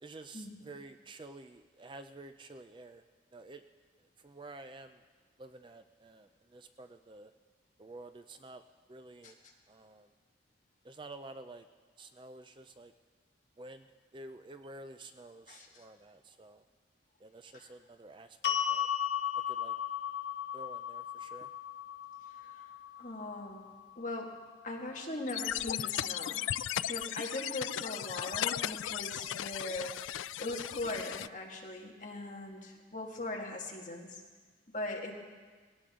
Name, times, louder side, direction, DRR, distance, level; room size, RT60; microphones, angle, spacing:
voice 1, 0.0-3.0 3.3-3.6 4.2-5.0 5.4-7.3 7.8-8.6 8.9-9.4 9.7-10.1 10.8-11.7 12.0-12.9 13.6-13.9 14.1-16.6 17.2-18.9 19.5-19.8 20.5-21.5, right 2 dB, 25° right, 8 dB, 0.4 m, -50 dB
sound 1, 18.4-24.6, left 10 dB, 60° left, 1.0 m, -36 dB
voice 2, 22.3-22.6 23.0-23.7 24.0-24.4 24.6-26.4 26.8-34.2 34.7-35.1, left 2 dB, 40° left, -1 dB, 2.0 m, -40 dB
sound 2, 25.3-31.3, left 11 dB, 85° left, 0.3 m, -36 dB
19.0 x 17.5 x 3.7 m, 1.5 s
head